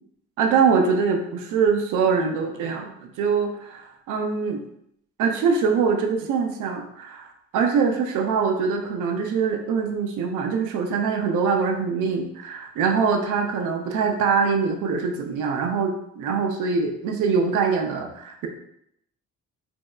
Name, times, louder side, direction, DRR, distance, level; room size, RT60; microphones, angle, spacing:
voice 1, 0.4-4.6 5.2-18.5, right 5 dB, 80° right, 3 dB, 0.5 m, -23 dB
3.0 x 2.7 x 2.3 m, 0.73 s
cardioid pair, 90°, 30 cm